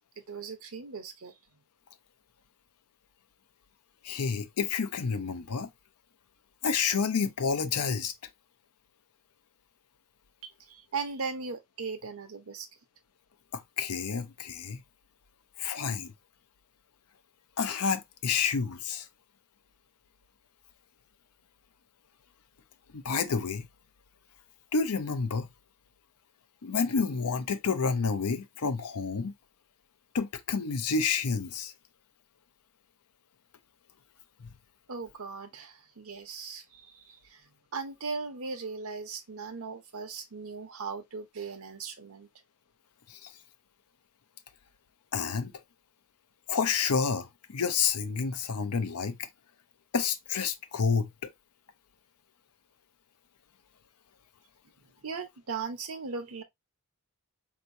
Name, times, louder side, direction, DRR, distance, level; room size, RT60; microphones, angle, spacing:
voice 1, 0.3-1.3 10.4-12.7 34.9-42.3 55.0-56.4, right 4 dB, 70° right, 0.9 m, -38 dB
voice 2, 4.0-5.7 6.6-8.1 13.5-14.8 15.6-16.1 17.6-19.1 22.9-23.7 24.7-25.5 26.6-29.3 30.1-31.7 34.4-34.5 43.1-43.3 45.1-45.5 46.5-49.2 49.9-51.3, left 5 dB, 90° left, 0.6 m, -29 dB
4.5 x 2.9 x 2.6 m
head